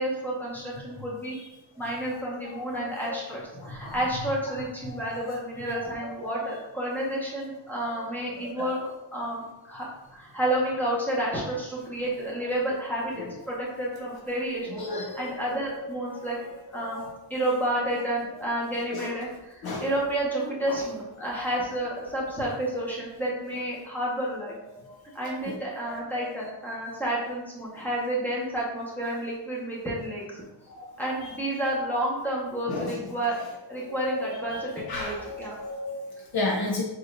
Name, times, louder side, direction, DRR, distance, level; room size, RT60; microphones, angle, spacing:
voice 1, 0.0-1.4 1.8-16.4 16.7-17.0 17.3-24.5 25.1-30.4 31.0-33.4 33.7-35.6, right 1 dB, 5° left, -6 dB, 1.3 m, -30 dB
voice 2, 2.7-3.1 3.6-3.9 5.3-5.4 6.0-6.1 8.6-8.7 14.7-15.2 16.9-17.0 18.9-19.1 19.6-19.8 30.7-30.8 32.7-32.9 33.8-34.2 34.5-36.8, left 2 dB, 50° left, -1 dB, 0.8 m, -32 dB
4.5 x 4.0 x 2.6 m, 1.0 s
wide cardioid pair, 140°, 48 cm